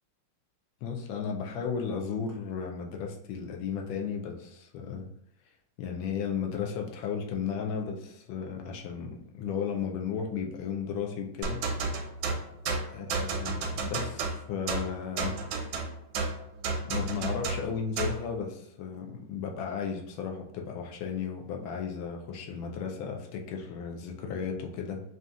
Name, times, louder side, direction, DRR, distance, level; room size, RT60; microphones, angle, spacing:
voice 1, 0.8-5.1 5.8-11.6 12.9-15.4 16.8-25.0, left 6 dB, 85° left, 2 dB, 1.4 m, -34 dB
sound 1, 11.4-18.3, right 3 dB, 90° right, 1.4 m, -32 dB
5.2 x 2.9 x 2.3 m, 0.73 s
omnidirectional pair, 2.2 m